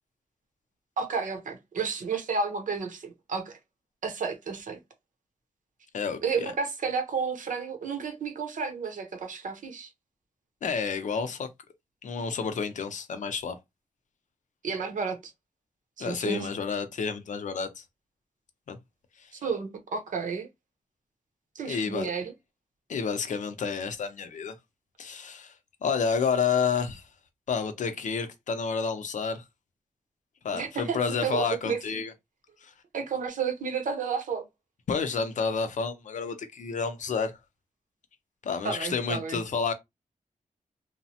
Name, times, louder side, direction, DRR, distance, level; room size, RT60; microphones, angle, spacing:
voice 1, 1.0-3.6 4.0-4.8 6.2-9.9 14.6-15.3 16.0-16.5 19.4-20.5 21.5-22.3 30.5-32.0 32.9-34.4 38.6-39.4, right 5 dB, 80° right, 0.8 m, -31 dB
voice 2, 5.9-6.5 10.6-11.5 12.0-13.6 16.0-17.8 18.7-18.8 19.2-19.3 21.7-22.1 22.9-24.6 25.0-25.5 25.8-27.0 27.5-29.4 30.4-32.1 32.6-32.7 34.9-37.4 38.4-39.7, left 5 dB, 70° left, 0.6 m, -30 dB
3.1 x 2.0 x 2.8 m
wide cardioid pair, 115°, 13 cm